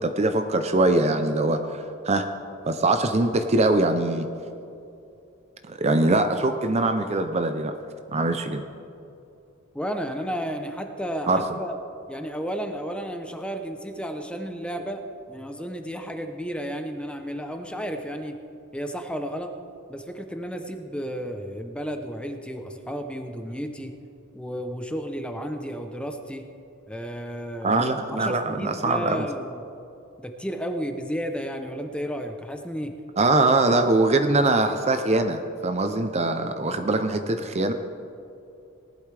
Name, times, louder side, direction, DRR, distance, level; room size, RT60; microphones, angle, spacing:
voice 1, 0.0-2.3 2.7-4.3 5.7-7.7 8.1-8.6 11.3-11.4 27.6-29.3 33.2-37.7, right 2 dB, 30° right, 8 dB, 0.6 m, -22 dB
voice 2, 9.7-11.8 12.1-15.0 15.3-18.4 18.7-19.5 19.9-23.9 24.3-26.4 26.9-27.8 28.1-29.6 30.2-32.9, equal, 5° left, 5 dB, 0.7 m, -32 dB
18.5 x 11.5 x 3.4 m, 2.7 s
head